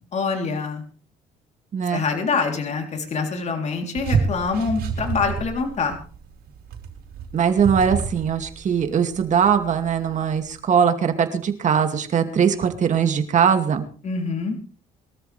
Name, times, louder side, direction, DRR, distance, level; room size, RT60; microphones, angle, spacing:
voice 1, 0.1-0.8 1.9-6.0 14.0-14.6, left 4 dB, 40° left, 3 dB, 3.6 m, -25 dB
voice 2, 1.7-2.0 7.3-13.8, right 7 dB, 45° right, 6 dB, 2.5 m, -20 dB
sound 1, 4.0-10.6, right 5 dB, 65° right, 5.2 m, -29 dB
23.5 x 13.5 x 3.5 m, 0.41 s
cardioid pair, 110°, 17 cm